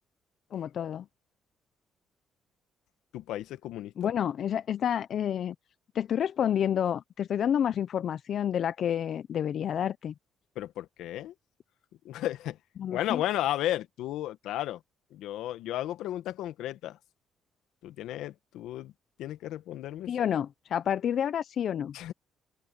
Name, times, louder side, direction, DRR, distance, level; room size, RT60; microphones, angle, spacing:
voice 1, 0.5-1.1 4.0-5.5 5.9-10.1 12.8-13.2 20.1-21.9, left 9 dB, 60° left, 0.6 m, -29 dB
voice 2, 3.1-4.1 10.5-11.3 12.0-12.6 12.9-14.8 15.1-17.0 17.8-18.9 19.2-20.1 21.9-22.1, left 13 dB, 80° left, 1.3 m, -34 dB
cardioid pair, 75°, 0 cm